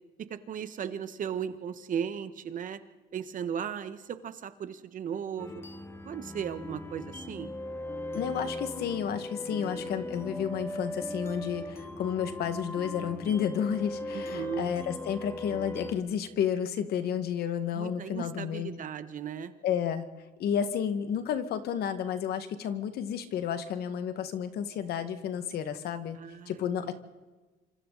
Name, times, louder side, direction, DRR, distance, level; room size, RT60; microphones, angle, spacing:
voice 1, 0.3-2.8 3.1-5.6 6.0-7.5 14.3-14.7 17.7-19.5 26.2-26.7, right 8 dB, 50° right, 11 dB, 1.5 m, -36 dB
sound 1, 5.4-15.9, left 1 dB, 15° left, 2.0 m, -38 dB
voice 2, 8.1-18.7 19.6-20.1 20.4-26.2 26.5-26.9, left 8 dB, 70° left, 9 dB, 2.0 m, -31 dB
27.5 x 25.5 x 4.2 m, 1.2 s
cardioid pair, 110°, 17 cm